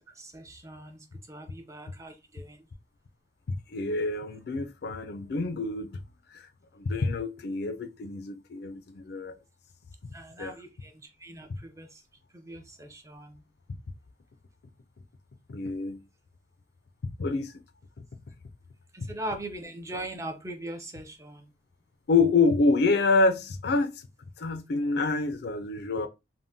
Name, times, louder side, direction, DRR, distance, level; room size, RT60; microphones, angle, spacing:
voice 1, 0.2-1.0 1.3-2.6 10.1-10.9 11.2-11.9 12.3-13.4 18.9-21.5, right 1 dB, 15° right, 0.5 m, -40 dB
voice 2, 3.5-6.0 6.8-9.3 10.4-10.5 15.5-16.0 17.2-17.5 22.1-24.0 24.4-26.1, left 3 dB, 65° left, 0.4 m, -27 dB
3.5 x 2.1 x 2.6 m
head